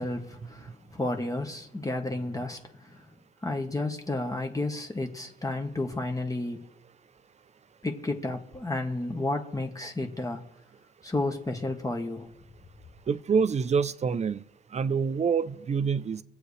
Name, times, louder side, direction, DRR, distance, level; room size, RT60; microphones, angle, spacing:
voice 1, 0.0-3.1 3.4-6.6 7.8-10.4 11.0-12.3, left 2 dB, 15° left, 1.2 m, -32 dB
voice 2, 13.1-14.4 14.7-16.2, right 6 dB, 35° right, 0.5 m, -26 dB
24.0 x 8.3 x 3.2 m
cardioid pair, 90°, 20 cm